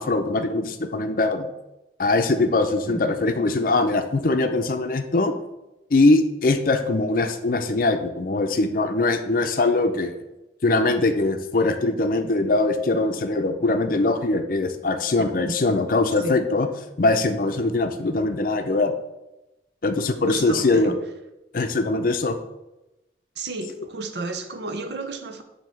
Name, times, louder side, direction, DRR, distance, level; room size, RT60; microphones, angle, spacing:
voice 1, 0.0-1.5 2.0-5.3 5.9-10.2 10.6-16.7 17.0-18.9 19.8-20.9 21.5-22.4, left 2 dB, 50° left, 7 dB, 0.5 m, -22 dB
voice 2, 2.9-3.2 15.4-15.6 16.2-16.4 20.2-21.0 23.4-25.4, right 3 dB, 75° right, 7 dB, 0.7 m, -32 dB
7.5 x 2.8 x 5.5 m, 0.96 s
head